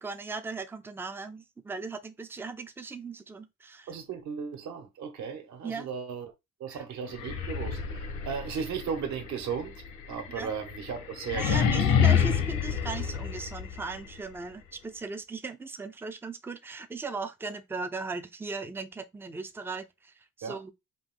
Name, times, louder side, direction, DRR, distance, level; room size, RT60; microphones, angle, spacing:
voice 1, 0.0-3.9 5.6-5.9 6.7-6.8 10.3-10.5 11.3-20.7, right 4 dB, 5° right, 0.4 m, -38 dB
voice 2, 3.9-6.3 6.6-9.8 10.1-11.9 20.4-20.6, right 6 dB, 60° right, 1.4 m, -36 dB
sound 1, 7.1-14.0, left 7 dB, 90° left, 1.1 m, -28 dB
5.2 x 2.7 x 3.7 m
cardioid pair, 150°, 31 cm